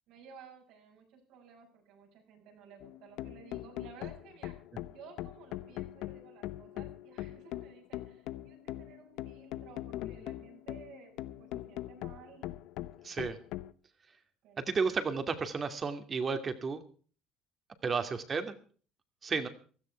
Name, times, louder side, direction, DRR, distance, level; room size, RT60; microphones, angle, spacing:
voice 1, 0.1-4.5 4.9-11.1 11.4-12.5 14.4-14.6, right 6 dB, 75° right, 2 dB, 6.5 m, -55 dB
sound 1, 2.8-13.7, left 15 dB, 75° left, 0.8 m, -41 dB
voice 2, 13.0-13.4 14.6-16.8 17.8-18.5 19.2-19.5, right 5 dB, 35° right, 9 dB, 2.5 m, -32 dB
16.0 x 13.0 x 4.6 m, 0.41 s
supercardioid pair, 100°, 0 cm